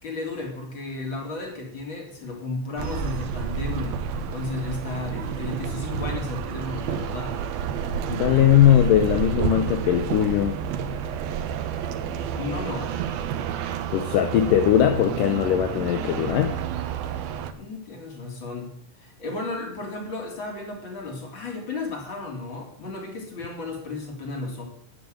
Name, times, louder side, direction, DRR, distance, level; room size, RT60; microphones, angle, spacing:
voice 1, 0.0-7.3 12.3-13.0 17.6-18.7 19.0-24.6, left 3 dB, 35° left, 1 dB, 3.8 m, -34 dB
sound 1, 2.8-17.5, right 7 dB, 80° right, 2.9 m, -30 dB
voice 2, 8.1-10.6 13.9-16.6, left 11 dB, 75° left, 7 dB, 2.3 m, -20 dB
11.0 x 10.0 x 8.0 m, 0.68 s
omnidirectional pair, 4.2 m